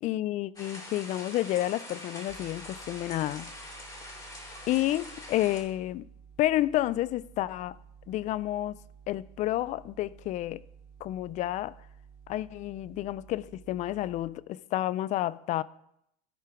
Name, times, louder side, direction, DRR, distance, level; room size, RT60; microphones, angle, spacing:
voice 1, 0.0-3.5 4.7-6.1 6.4-7.8 8.1-8.8 9.1-10.6 11.0-11.8 12.3-15.6, left 14 dB, 40° left, 0.4 m, -30 dB
sound 1, 0.6-5.6, left 1 dB, 20° left, 2.9 m, -44 dB
sound 2, 2.3-14.2, right 6 dB, 55° left, 1.3 m, -53 dB
11.5 x 4.6 x 5.1 m
supercardioid pair, 105°, 20 cm